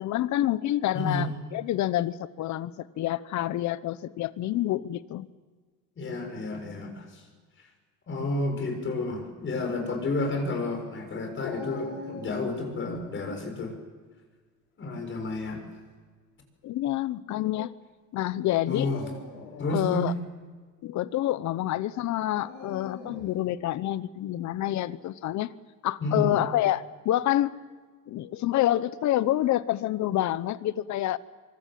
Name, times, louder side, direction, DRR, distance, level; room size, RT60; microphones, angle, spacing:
voice 1, 0.0-5.3 16.6-17.7 18.1-18.9 19.7-20.1 20.8-25.5 25.8-27.5 28.1-31.2, left 13 dB, 65° left, 16 dB, 1.0 m, -27 dB
voice 2, 0.9-1.3 6.0-7.1 8.1-13.7 14.8-15.6 18.7-19.0 19.6-20.1 26.0-26.3, left 2 dB, 40° left, 4 dB, 6.7 m, -30 dB
Dog, 11.4-13.0 15.1-15.6 16.4-16.5 18.6-19.9 22.3-23.3, left 4 dB, 90° left, 6.6 m, -41 dB
25.0 x 24.0 x 7.7 m, 1.5 s
cardioid pair, 125°, 32 cm